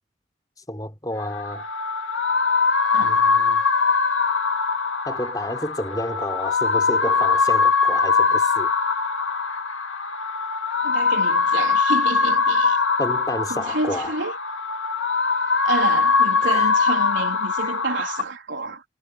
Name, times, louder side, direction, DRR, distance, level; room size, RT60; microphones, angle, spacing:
voice 1, 0.7-1.7 3.0-3.6 5.0-8.7 13.0-14.1 16.4-16.7, left 1 dB, 20° left, 4.9 m, -30 dB
sound 1, 1.2-18.2, left 5 dB, 90° left, 2.3 m, -22 dB
voice 2, 2.9-3.2 10.8-12.8 13.5-14.4 15.6-18.8, right 3 dB, 80° right, 3.7 m, -29 dB
head